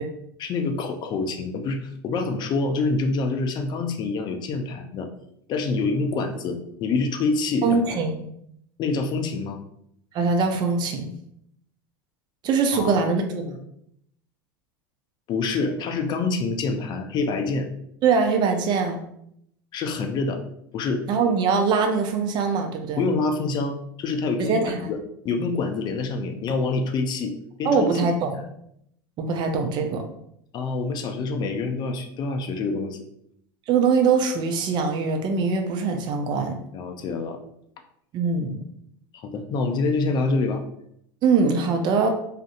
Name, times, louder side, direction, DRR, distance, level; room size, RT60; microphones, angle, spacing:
voice 1, 0.4-5.1 5.5-7.8 8.8-9.6 12.7-12.9 15.3-17.7 19.7-20.4 20.7-21.1 23.0-28.0 30.5-33.0 36.7-37.4 39.1-40.6, left 3 dB, 40° left, 4 dB, 0.5 m, -26 dB
voice 2, 7.6-8.2 10.1-11.1 12.4-13.6 18.0-19.0 21.1-23.0 24.4-24.9 27.6-28.3 29.2-30.0 33.7-36.6 38.1-38.6 41.2-42.1, right 5 dB, 40° right, 4 dB, 0.4 m, -22 dB
2.5 x 2.5 x 2.4 m, 0.73 s
hypercardioid pair, 95°, 12 cm